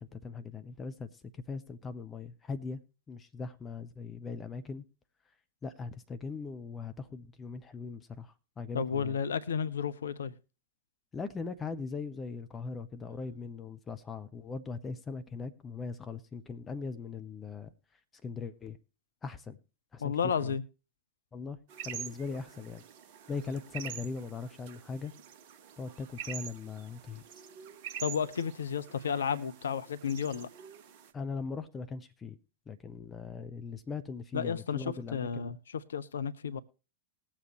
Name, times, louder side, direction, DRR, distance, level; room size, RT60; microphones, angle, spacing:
voice 1, 0.0-4.8 5.6-9.2 11.1-17.7 18.2-18.8 19.2-19.6 19.9-20.2 20.4-20.6 21.3-21.6 21.8-22.8 23.3-25.1 25.8-27.5 31.1-32.4 32.7-35.5, left 4 dB, 20° left, 0.9 m, -40 dB
voice 2, 8.7-10.4 20.0-20.6 28.0-30.5 34.3-36.6, left 7 dB, 70° left, 0.6 m, -32 dB
sound 1, 21.7-31.1, right 8 dB, 50° right, 1.2 m, -46 dB
20.5 x 7.4 x 3.0 m
figure-of-eight pair, 90°, 0 cm